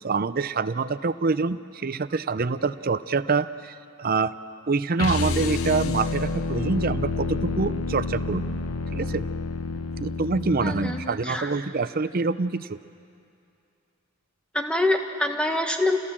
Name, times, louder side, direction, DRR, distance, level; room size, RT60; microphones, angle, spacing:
voice 1, 0.0-4.3 4.7-8.4 8.9-9.2 10.0-12.8, right 4 dB, 40° right, 13 dB, 0.5 m, -26 dB
sound 1, 5.0-11.1, left 3 dB, 70° left, 0.8 m, -29 dB
voice 2, 10.6-11.5 14.5-16.0, left 1 dB, 5° left, 4 dB, 1.2 m, -25 dB
28.0 x 17.5 x 7.4 m, 2.5 s
head